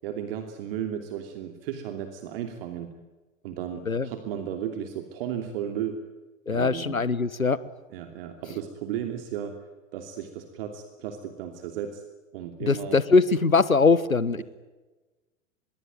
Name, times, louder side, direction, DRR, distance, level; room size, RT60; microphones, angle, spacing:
voice 1, 0.0-3.0 3.4-6.1 6.5-7.0 7.9-9.6 9.9-12.0 12.3-13.0, right 9 dB, 45° right, 7 dB, 2.9 m, -34 dB
voice 2, 6.5-7.6 12.7-14.4, left 4 dB, 85° left, 17 dB, 1.4 m, -21 dB
25.0 x 22.5 x 9.4 m, 1.2 s
figure-of-eight pair, 100°, 40 cm